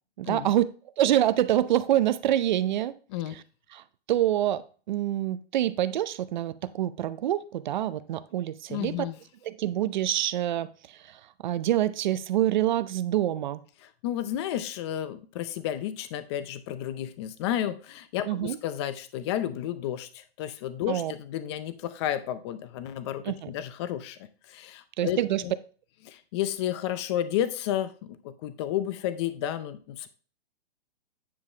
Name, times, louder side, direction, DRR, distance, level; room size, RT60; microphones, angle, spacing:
voice 1, 0.2-0.7 1.0-2.9 3.7-9.1 9.4-13.6 18.3-18.6 20.9-21.1 23.2-23.5 25.0-25.4, right 12 dB, 45° right, 0.6 m, -26 dB
voice 2, 8.7-9.2 14.0-25.5 26.0-30.1, left 11 dB, 25° left, 0.5 m, -32 dB
9.8 x 5.5 x 3.3 m
hypercardioid pair, 155°, 31 cm